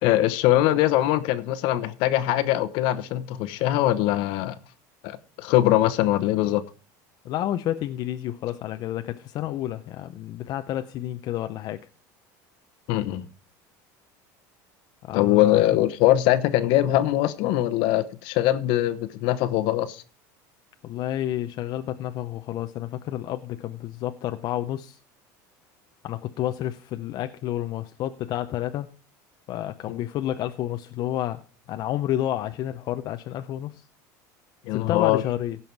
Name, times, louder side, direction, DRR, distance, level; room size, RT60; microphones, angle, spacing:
voice 1, 0.0-4.5 5.0-6.6 12.9-13.3 15.1-20.0 29.9-30.0 34.7-35.2, left 14 dB, 65° left, 1.0 m, -22 dB
voice 2, 7.2-11.8 15.1-15.6 20.8-25.0 26.0-28.9 29.5-31.4 31.7-33.8 34.7-35.6, left 12 dB, 50° left, 0.6 m, -30 dB
16.0 x 5.6 x 4.6 m
supercardioid pair, 125°, 9 cm